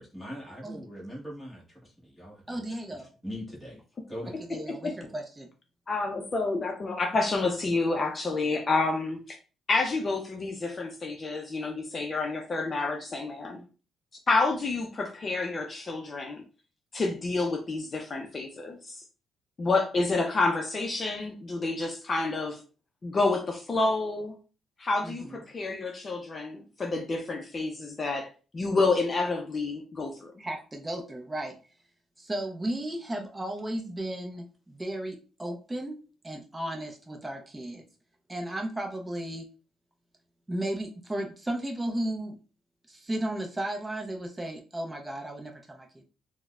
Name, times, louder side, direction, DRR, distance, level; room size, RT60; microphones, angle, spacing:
voice 1, 0.0-2.6 2.9-3.8 4.1-4.4, equal, ahead, -6 dB, 1.1 m, -41 dB
voice 2, 2.5-3.1 4.4-5.5 25.0-25.4 30.4-31.6 32.2-36.0 36.2-37.8 38.3-39.5 40.5-42.4 42.9-46.0, right 1 dB, 15° right, 2 dB, 0.6 m, -34 dB
voice 3, 4.5-4.9 5.9-9.4 9.7-13.6 14.3-16.4 16.9-19.0 19.6-22.6 23.0-24.3 24.8-28.3 28.5-30.3, left 3 dB, 35° left, 2 dB, 0.5 m, -29 dB
3.8 x 2.1 x 2.3 m, 0.36 s
cardioid pair, 90°, 0 cm